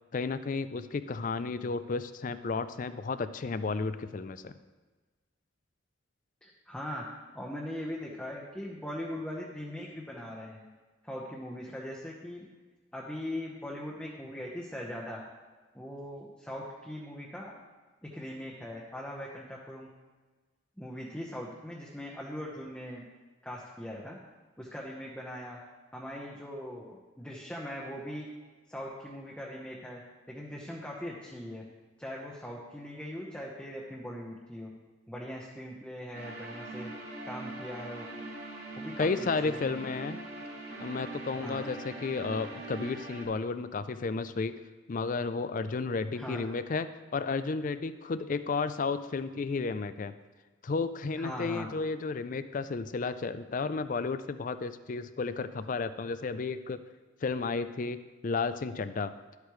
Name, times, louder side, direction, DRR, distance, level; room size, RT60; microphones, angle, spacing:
voice 1, 0.1-4.5 39.0-40.2 40.8-44.6 44.9-50.2 50.6-56.8 57.2-59.1, left 4 dB, 40° left, 13 dB, 0.4 m, -33 dB
voice 2, 6.4-7.1 7.3-10.7 11.0-12.4 12.9-15.2 15.7-17.5 18.0-19.9 20.8-23.0 23.4-24.2 24.6-25.6 25.9-28.3 28.7-30.0 30.3-31.6 32.0-34.7 35.1-36.9 37.2-38.1 38.8-39.9 41.4-41.6 46.1-46.4 51.2-51.7, equal, 5° left, -3 dB, 0.9 m, -40 dB
sound 1, 36.1-43.3, right 2 dB, 55° right, 2.9 m, -42 dB
12.0 x 8.2 x 3.2 m, 1.3 s
head